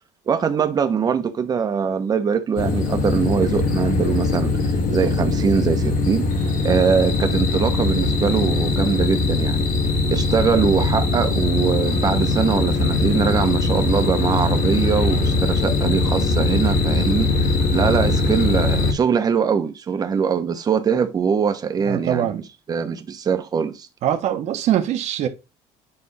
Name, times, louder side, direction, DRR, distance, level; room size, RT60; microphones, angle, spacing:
voice 1, 0.3-4.5 4.9-6.3 6.6-9.6 10.1-17.4 17.7-22.3 22.7-23.9, right 6 dB, 30° right, 0.9 m, -22 dB
sound 1, 2.6-18.9, left 3 dB, 65° left, 2.3 m, -21 dB
voice 2, 21.8-22.4 24.0-25.3, right 10 dB, 55° right, 1.2 m, -22 dB
8.8 x 3.4 x 4.1 m
cardioid pair, 150°, 13 cm